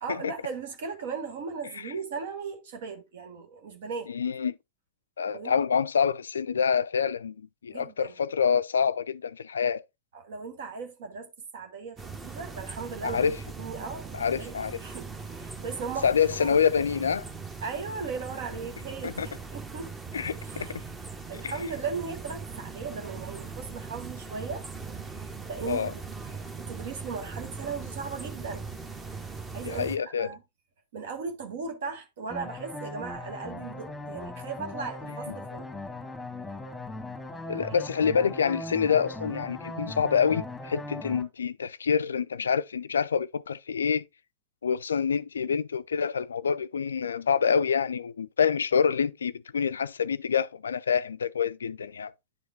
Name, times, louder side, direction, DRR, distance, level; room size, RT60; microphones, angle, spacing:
voice 1, 0.0-4.1 5.3-5.6 7.7-8.1 10.1-13.3 13.6-16.1 16.4-16.6 17.6-19.9 20.4-20.9 21.3-24.7 25.1-26.0 26.3-28.6 29.3-30.4 30.9-35.7 37.6-37.7, right 5 dB, 55° right, 1.1 m, -37 dB
voice 2, 4.1-4.6 5.2-9.8 13.0-13.4 14.1-14.8 16.0-17.3 19.0-19.3 20.1-20.8 21.4-21.5 25.7-25.9 29.6-30.3 37.5-44.1 44.6-52.1, left 6 dB, 70° left, 0.3 m, -27 dB
sound 1, 12.0-30.0, right 4 dB, 15° right, 1.0 m, -40 dB
sound 2, 32.3-41.2, left 2 dB, 5° left, 1.4 m, -39 dB
9.9 x 4.9 x 2.5 m
figure-of-eight pair, 90°, 0 cm